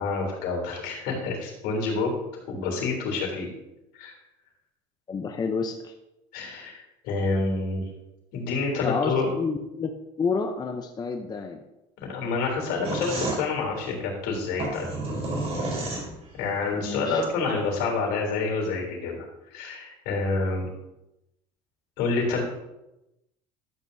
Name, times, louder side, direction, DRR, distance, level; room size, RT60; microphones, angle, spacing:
voice 1, 0.0-2.2 2.5-3.5 3.9-4.1 6.3-7.9 8.3-9.3 12.0-14.9 16.3-19.3 19.5-20.7 22.0-22.4, left 4 dB, 75° left, 0 dB, 3.6 m, -28 dB
voice 2, 5.1-5.9 8.8-9.9 10.2-11.6 16.7-17.2, left 5 dB, 25° left, 4 dB, 0.7 m, -29 dB
sound 1, 12.8-16.5, right 2 dB, 40° right, 3.8 m, -31 dB
12.5 x 8.3 x 2.7 m, 0.92 s
cardioid pair, 120°, 16 cm